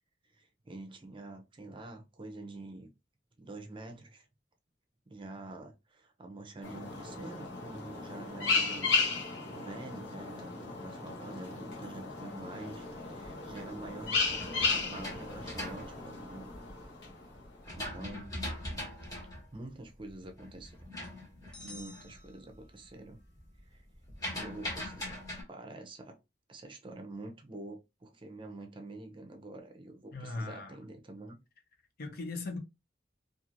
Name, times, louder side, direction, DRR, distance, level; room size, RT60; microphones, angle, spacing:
voice 1, 0.3-2.9 3.4-4.3 5.1-8.9 9.5-16.5 17.7-18.4 19.5-20.8 21.6-23.2 23.7-23.8 24.3-26.2 26.5-31.4, right 2 dB, 30° right, 0.5 m, -46 dB
sound 1, 6.6-17.6, left 4 dB, 80° left, 0.9 m, -35 dB
sound 2, 13.2-16.8 17.3-22.2 22.5-22.9 23.2-25.4, left 1 dB, 20° left, 1.2 m, -41 dB
sound 3, 21.5-23.1, left 2 dB, 5° left, 0.7 m, -52 dB
voice 2, 30.1-30.8 32.0-32.6, left 3 dB, 55° left, 0.6 m, -38 dB
2.9 x 2.4 x 2.5 m
head